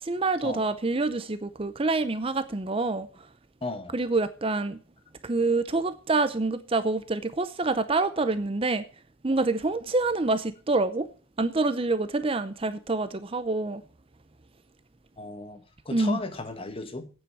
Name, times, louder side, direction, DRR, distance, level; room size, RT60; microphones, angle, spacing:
voice 1, 0.0-3.1 3.9-4.8 5.2-8.8 9.2-11.1 11.4-13.8 15.9-16.2, right 3 dB, 25° right, 0.6 m, -26 dB
voice 2, 3.6-4.0 15.2-17.1, left 3 dB, 30° left, 1.2 m, -36 dB
8.8 x 7.9 x 8.7 m
head